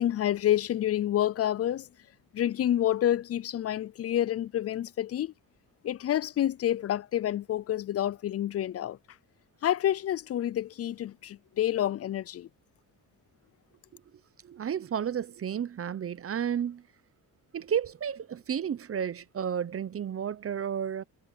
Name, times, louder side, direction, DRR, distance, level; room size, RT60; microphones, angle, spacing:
voice 1, 0.0-1.9 2.3-5.3 5.8-9.0 9.6-12.5, left 11 dB, 40° left, 0.4 m, -28 dB
voice 2, 14.4-16.8 17.5-21.0, right 8 dB, 35° right, 0.7 m, -32 dB
cardioid pair, 115°, 39 cm